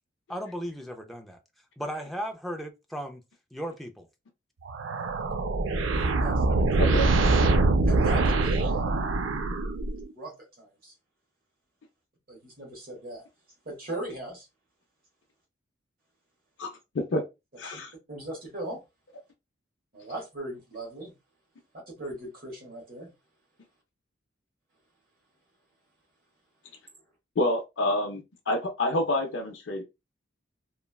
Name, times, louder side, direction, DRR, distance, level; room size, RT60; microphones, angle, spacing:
voice 1, 0.3-1.4 1.8-3.2 3.5-4.1, equal, ahead, 0.3 m, -36 dB
sound 1, 4.7-10.1, right 2 dB, 75° right, 0.5 m, -24 dB
voice 2, 5.9-7.0 7.8-8.9 10.1-10.9 12.3-13.2 13.6-14.4 17.6-17.8 18.1-18.8 19.9-21.1 22.0-23.1, right 1 dB, 50° right, 1.1 m, -39 dB
voice 3, 6.8-7.1 16.6-16.7 17.1-17.2 17.6-17.9 27.4-29.8, left 1 dB, 65° left, 0.5 m, -27 dB
3.0 x 2.2 x 2.3 m
head